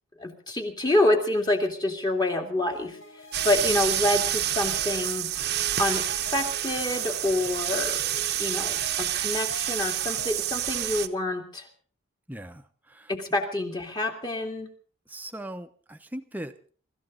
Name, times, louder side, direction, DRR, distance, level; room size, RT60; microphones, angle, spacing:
voice 1, 0.2-3.0 3.4-5.3 5.8-8.0 8.4-11.7 13.1-14.7, left 1 dB, 20° left, 3 dB, 2.3 m, -27 dB
sound 1, 2.7-10.3, left 1 dB, 85° left, 4.7 m, -45 dB
sound 2, 3.3-11.1, right 12 dB, 50° right, 0.9 m, -28 dB
voice 2, 12.3-13.1 15.1-16.7, right 1 dB, 10° right, 7 dB, 0.9 m, -39 dB
24.5 x 14.0 x 4.0 m, 0.42 s
head